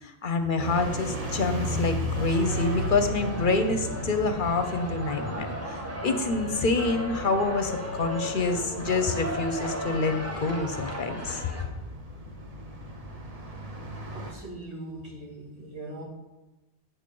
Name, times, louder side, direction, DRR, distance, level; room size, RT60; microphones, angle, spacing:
voice 1, 0.0-11.5, left 3 dB, 55° left, 7 dB, 0.7 m, -27 dB
sound 1, 0.6-14.3, right 1 dB, 35° right, 1.1 m, -36 dB
sound 2, 2.1-11.6, equal, 15° right, 1.0 m, -36 dB
voice 2, 14.1-16.0, right 2 dB, 75° right, -2 dB, 2.2 m, -40 dB
7.3 x 5.2 x 6.8 m, 1.1 s
omnidirectional pair, 1.1 m